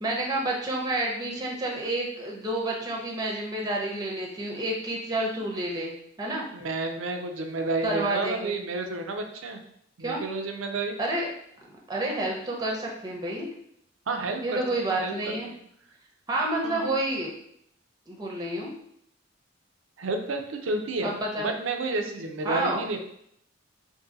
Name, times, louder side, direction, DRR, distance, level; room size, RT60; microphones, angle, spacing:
voice 1, 0.0-6.5 7.8-8.6 10.0-10.2 11.0-11.3 11.9-13.5 14.4-15.5 16.3-17.3 18.1-18.7 21.0-21.5 22.4-22.8, right 1 dB, 20° right, -1 dB, 0.6 m, -29 dB
voice 2, 6.5-9.6 10.0-11.0 14.1-14.6 14.9-15.1 15.4-15.5 16.6-17.0 20.0-21.1 21.4-23.0, right 3 dB, 90° right, 5 dB, 0.5 m, -30 dB
2.7 x 2.6 x 3.8 m, 0.71 s
head